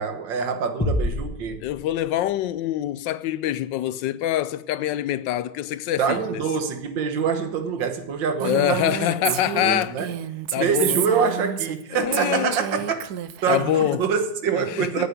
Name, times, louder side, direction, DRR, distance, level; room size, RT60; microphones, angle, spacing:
voice 1, 0.0-1.6 6.0-9.0 9.2-10.1 10.5-13.1 13.4-15.1, right 6 dB, 85° right, 1.9 m, -25 dB
sound 1, 0.8-2.5, left 1 dB, 10° left, 0.7 m, -28 dB
voice 2, 1.6-6.5 8.4-9.9 10.5-11.0 11.9-12.6 13.5-14.0 14.6-15.1, left 13 dB, 80° left, 1.3 m, -25 dB
Female speech woman speaking, 8.4-11.8 12.1-13.9, right 10 dB, 65° right, 1.0 m, -30 dB
9.5 x 8.2 x 9.6 m
omnidirectional pair, 2.0 m